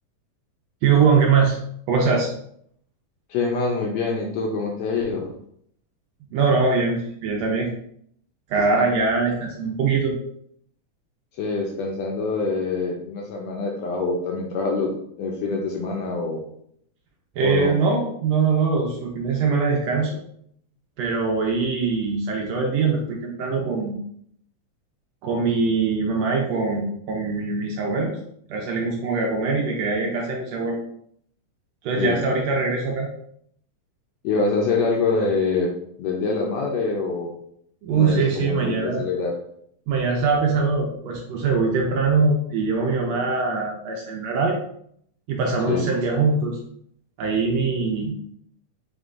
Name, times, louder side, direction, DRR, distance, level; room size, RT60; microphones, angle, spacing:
voice 1, 0.8-1.6 1.9-2.3 6.3-7.7 8.5-10.1 17.4-20.2 21.0-24.0 25.2-28.2 28.5-30.8 31.8-33.1 37.8-39.1 39.9-44.5 45.3-46.6 47.2-48.2, right 4 dB, 75° right, -1 dB, 1.6 m, -22 dB
voice 2, 3.3-5.3 11.4-14.9 15.2-16.4 17.4-17.7 31.9-32.2 34.2-37.3 37.9-39.3 45.7-45.9, left 4 dB, 75° left, 0 dB, 1.7 m, -25 dB
5.2 x 3.3 x 2.4 m, 0.69 s
omnidirectional pair, 3.4 m